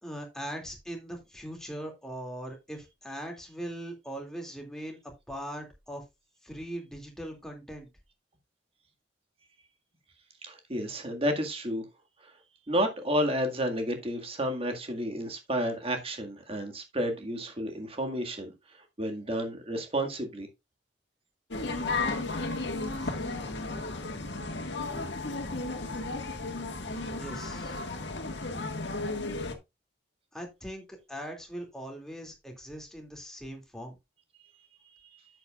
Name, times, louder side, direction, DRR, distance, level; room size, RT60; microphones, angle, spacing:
voice 1, 0.0-5.0 5.3-6.0 6.4-7.9 23.0-23.1 27.2-27.8 30.3-33.9, right 1 dB, 5° left, 2.4 m, -40 dB
voice 2, 10.5-11.8 12.2-12.3 12.7-18.5 19.0-20.5 35.1-35.2, equal, 35° right, 1.9 m, -31 dB
sound 1, 21.5-29.5, left 3 dB, 70° left, 1.7 m, -34 dB
10.5 x 8.0 x 2.4 m
head